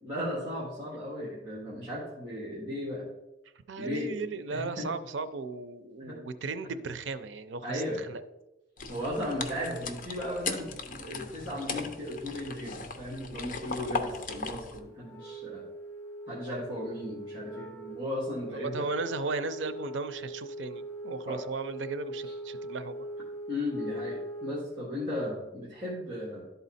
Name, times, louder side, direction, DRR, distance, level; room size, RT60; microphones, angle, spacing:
voice 1, 0.0-3.1 3.8-4.1 4.5-4.9 6.0-6.2 7.6-8.0 8.9-10.7 11.0-15.6 16.3-18.9 21.3-21.4 22.3-22.4 23.5-26.4, left 1 dB, 25° right, -7 dB, 1.8 m, -36 dB
voice 2, 3.7-8.2 18.5-23.1, right 4 dB, 85° right, 12 dB, 0.5 m, -36 dB
sound 1, 8.8-14.8, left 4 dB, 45° left, 0.7 m, -38 dB
Wind instrument woodwind instrument, 15.0-24.8, right 1 dB, 10° left, 1.0 m, -41 dB
11.5 x 4.0 x 4.1 m, 0.99 s
head